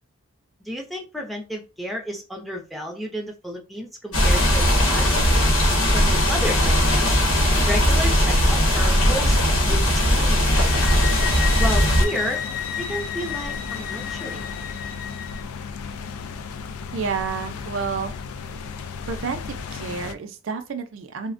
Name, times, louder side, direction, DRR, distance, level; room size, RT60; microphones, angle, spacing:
voice 1, 0.6-5.1 5.9-7.2 7.7-9.4 9.7-11.0 11.6-12.4 12.8-14.5, equal, ahead, 0.5 m, -32 dB
sound 1, 4.1-12.0, equal, 70° left, 0.9 m, -19 dB
sound 2, 8.9-20.1, left 5 dB, 85° left, 0.4 m, -34 dB
sound 3, 10.5-15.4, left 8 dB, 40° left, 0.7 m, -32 dB
voice 2, 16.9-18.1 19.1-21.3, right 5 dB, 65° right, 0.4 m, -30 dB
3.3 x 2.1 x 2.5 m
head